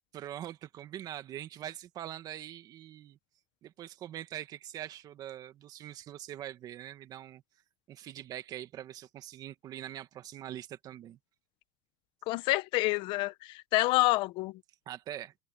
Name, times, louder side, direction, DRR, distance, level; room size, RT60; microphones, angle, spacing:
voice 1, 0.1-3.2 3.6-7.4 7.9-11.2 14.9-15.3, right 11 dB, 35° right, 2.1 m, -43 dB
voice 2, 12.3-14.6, left 19 dB, 50° left, 1.2 m, -28 dB
open air
supercardioid pair, 135°, 11 cm